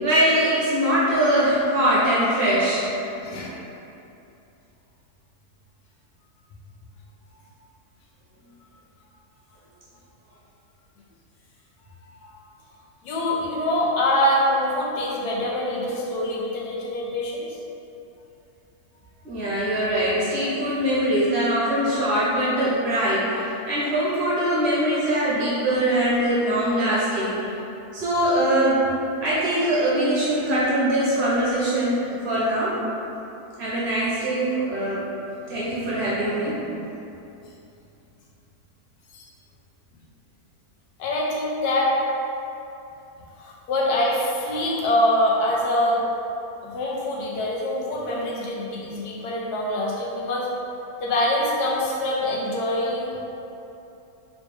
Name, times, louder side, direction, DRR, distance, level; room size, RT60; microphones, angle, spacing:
voice 1, 0.0-2.9 19.2-27.4 27.9-28.8 29.2-32.7 33.6-35.0 35.5-36.6, right 1 dB, 55° right, -8 dB, 0.8 m, -22 dB
voice 2, 3.1-3.6 12.2-12.4 13.0-17.6 39.1-39.3 41.0-42.0 43.4-46.1 46.6-50.5 51.0-53.2, left 1 dB, 90° left, -4 dB, 1.2 m, -24 dB
3.1 x 3.1 x 3.1 m, 2.8 s
omnidirectional pair, 1.6 m